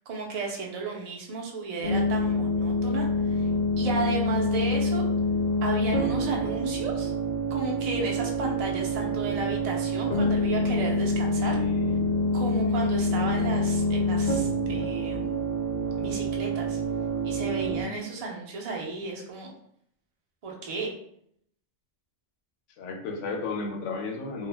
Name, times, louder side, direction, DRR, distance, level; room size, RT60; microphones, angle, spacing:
voice 1, 0.1-3.5 3.8-5.1 5.6-7.1 7.5-11.6 12.3-15.4 16.0-16.8 17.2-19.5 20.4-20.9, right 3 dB, 70° right, 0 dB, 0.3 m, -33 dB
sound 1, 1.8-17.8, left 1 dB, 45° left, 0.7 m, -26 dB
voice 2, 11.4-12.1 12.4-12.8 22.8-24.5, left 3 dB, 85° left, 3 dB, 0.9 m, -34 dB
2.4 x 2.0 x 3.2 m, 0.69 s
omnidirectional pair, 1.2 m